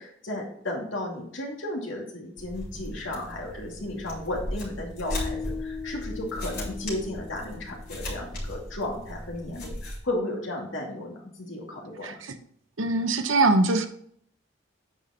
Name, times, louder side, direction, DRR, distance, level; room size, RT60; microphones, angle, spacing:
voice 1, 0.0-12.2, left 1 dB, 70° left, -2 dB, 2.5 m, -34 dB
sound 1, 2.4-10.0, left 1 dB, 55° left, 3.5 m, -37 dB
sound 2, 5.1-8.2, left 6 dB, ahead, 3.4 m, -39 dB
voice 2, 12.8-13.9, right 2 dB, 80° right, 8 dB, 0.9 m, -22 dB
9.0 x 5.2 x 4.3 m, 0.66 s
head